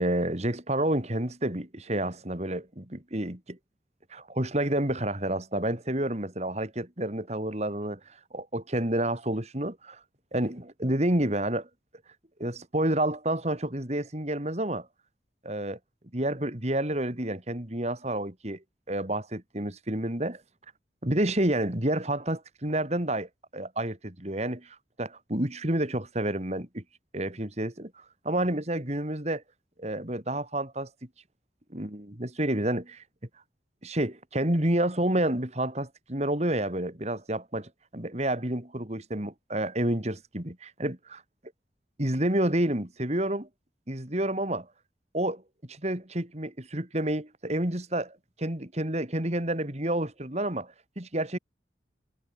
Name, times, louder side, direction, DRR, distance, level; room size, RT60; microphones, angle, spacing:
voice 1, 0.0-3.6 4.1-8.0 8.3-10.0 10.3-11.7 12.4-14.9 15.4-15.8 16.1-18.6 18.9-20.4 21.0-26.8 27.1-27.9 28.2-29.4 29.8-30.9 31.7-33.0 33.8-41.0 42.0-43.5 43.9-44.7 45.1-45.4 45.7-51.4, right 1 dB, 35° right, 2.9 m, -29 dB
head